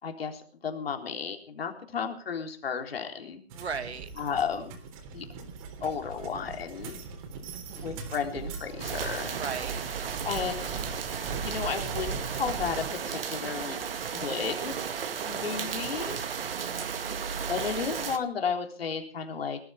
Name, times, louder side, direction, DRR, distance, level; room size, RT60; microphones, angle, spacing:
voice 1, 0.0-3.4 4.2-4.8 5.1-5.3 5.8-7.0 7.8-9.4 10.2-10.9 11.4-13.8 14.1-14.8 15.2-16.2 16.8-16.9 17.3-19.6, left 6 dB, 65° left, 4 dB, 3.8 m, -33 dB
sound 1, 3.5-12.9, right 5 dB, 35° right, 3.7 m, -39 dB
voice 2, 3.5-4.1 7.5-8.0 9.4-9.9 15.5-15.8 16.6-17.1, right 5 dB, 80° right, 10 dB, 2.4 m, -38 dB
sound 2, 8.8-18.2, right 7 dB, 60° right, 2.1 m, -34 dB
19.0 x 13.0 x 5.0 m, 0.43 s
hypercardioid pair, 150°, 32 cm